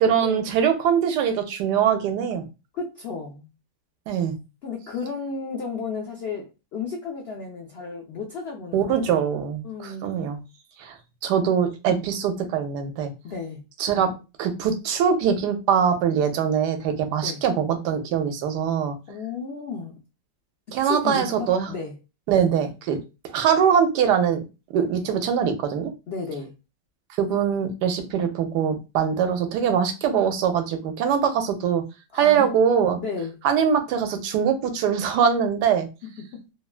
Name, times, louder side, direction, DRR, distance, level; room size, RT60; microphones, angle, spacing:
voice 1, 0.0-2.4 4.1-4.3 8.7-10.4 10.8-10.9 11.2-13.1 13.8-14.1 14.4-19.0 20.7-21.7 22.3-23.0 23.3-24.4 24.7-25.9 27.2-31.8 32.1-33.0 33.4-35.9, right 7 dB, 80° right, 7 dB, 1.2 m, -22 dB
voice 2, 2.7-3.5 4.6-9.2 9.6-10.3 11.9-12.1 13.2-13.6 17.2-17.4 19.1-20.0 20.8-21.9 26.1-26.5 32.1-32.5 33.0-33.3 36.0-36.4, left 4 dB, 80° left, 0 dB, 0.5 m, -33 dB
3.2 x 2.2 x 2.4 m, 0.28 s
omnidirectional pair, 1.8 m